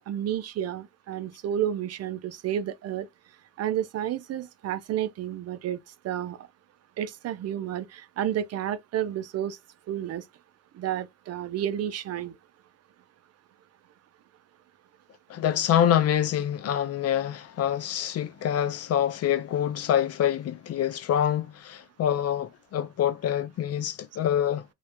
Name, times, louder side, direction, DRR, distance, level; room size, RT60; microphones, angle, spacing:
voice 1, 0.1-3.1 3.6-5.8 6.0-6.4 7.0-9.6 9.9-10.2 10.7-12.3, right 10 dB, 55° right, 0.4 m, -31 dB
voice 2, 15.3-24.6, left 10 dB, 55° left, 0.4 m, -26 dB
2.4 x 2.0 x 2.8 m
cardioid pair, 90°, 30 cm